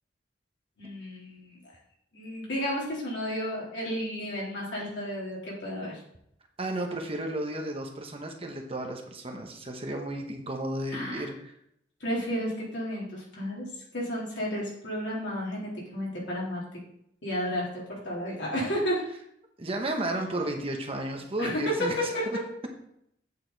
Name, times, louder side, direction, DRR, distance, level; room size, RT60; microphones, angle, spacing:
voice 1, 0.8-1.8 2.1-6.0 10.9-11.3 12.0-13.7 13.9-16.6 17.2-19.0 21.4-22.2, equal, 75° left, -5 dB, 3.6 m, -32 dB
voice 2, 6.6-11.5 19.6-22.0, right 1 dB, 30° right, 3 dB, 1.0 m, -33 dB
8.5 x 6.6 x 4.0 m, 0.75 s
head